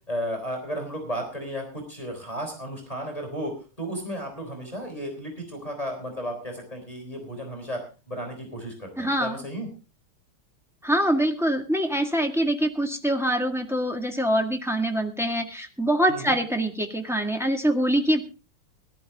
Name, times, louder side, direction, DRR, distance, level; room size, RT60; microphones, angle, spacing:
voice 1, 0.1-7.8 8.1-9.7 16.1-16.4, equal, 15° left, 3 dB, 4.1 m, -34 dB
voice 2, 9.0-9.4 10.8-18.2, right 1 dB, ahead, 2 dB, 1.6 m, -24 dB
18.0 x 12.0 x 3.6 m, 0.33 s
omnidirectional pair, 2.4 m